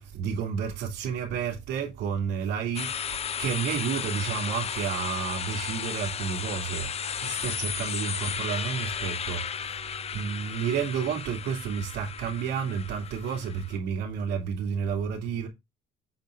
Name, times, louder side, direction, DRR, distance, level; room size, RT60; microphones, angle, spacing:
voice 1, 0.2-2.9 3.4-6.9 7.2-9.4 10.1-15.5, right 7 dB, 80° right, 2.9 m, -30 dB
sound 1, 2.7-13.8, left 8 dB, 40° left, 0.7 m, -34 dB
8.0 x 4.7 x 4.7 m
cardioid pair, 110°, 17 cm